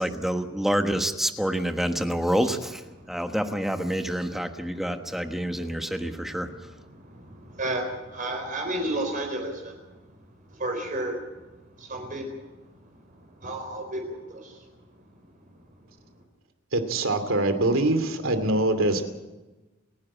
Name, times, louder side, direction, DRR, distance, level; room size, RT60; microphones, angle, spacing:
voice 1, 0.0-2.8 3.1-6.5, equal, ahead, 6 dB, 1.3 m, -27 dB
voice 2, 4.5-5.9 6.3-9.8 10.5-11.4 11.8-12.4 13.1-14.7, right 1 dB, 40° right, 3 dB, 4.3 m, -34 dB
voice 3, 16.7-19.0, right 2 dB, 85° right, 8 dB, 2.7 m, -23 dB
29.5 x 10.5 x 8.7 m, 1.1 s
head